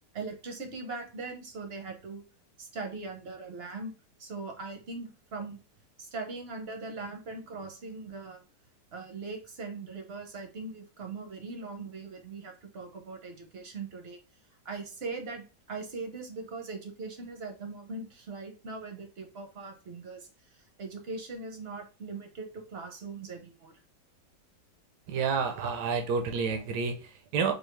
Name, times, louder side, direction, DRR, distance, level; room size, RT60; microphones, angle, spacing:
voice 1, 0.1-2.2 2.6-3.9 4.2-5.6 6.0-8.4 8.9-14.2 14.6-15.4 15.7-23.7, right 3 dB, 50° right, 3 dB, 0.8 m, -40 dB
voice 2, 25.1-27.5, right 5 dB, 75° right, 4 dB, 1.2 m, -29 dB
4.4 x 2.6 x 3.1 m, 0.33 s
omnidirectional pair, 1.8 m